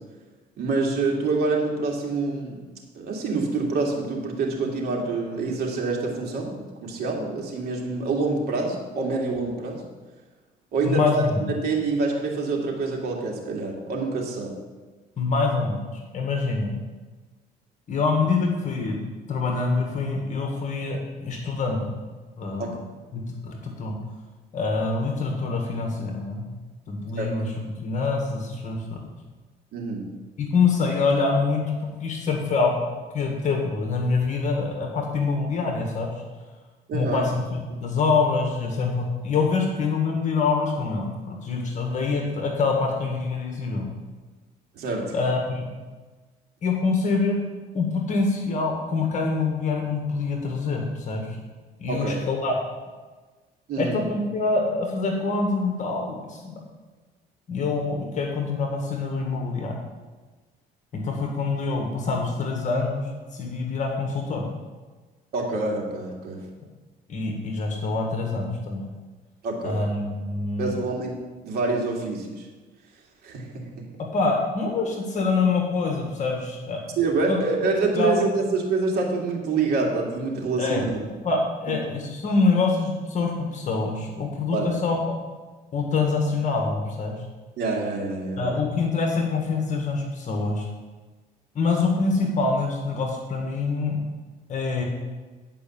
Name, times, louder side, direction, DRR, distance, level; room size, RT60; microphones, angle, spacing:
voice 1, 0.6-2.6 2.9-9.8 10.7-14.5 22.6-22.8 27.2-27.3 29.7-30.0 36.9-37.2 44.7-45.1 51.9-52.3 53.7-54.0 65.3-66.4 69.4-69.8 70.6-71.1 71.4-72.5 73.2-73.8 77.0-81.0 84.5-84.7 87.6-88.6, right 3 dB, 70° right, 0 dB, 2.4 m, -26 dB
voice 2, 10.8-11.5 15.2-16.8 17.9-19.0 19.3-21.9 22.4-22.7 23.1-23.9 24.5-26.4 26.9-27.5 27.8-29.0 30.4-32.7 33.1-36.1 36.9-43.9 45.1-45.6 46.6-47.4 47.7-51.4 51.8-52.5 53.8-56.6 57.5-59.8 60.9-63.0 63.3-64.5 67.1-68.9 69.6-70.8 74.1-76.8 77.3-77.4 77.9-78.3 80.6-80.9 81.2-85.2 85.7-87.1 88.4-90.7 91.5-94.0 94.5-94.8, left 4 dB, 45° left, 1 dB, 1.7 m, -25 dB
10.0 x 5.4 x 7.1 m, 1.3 s
cardioid pair, 110°, 17 cm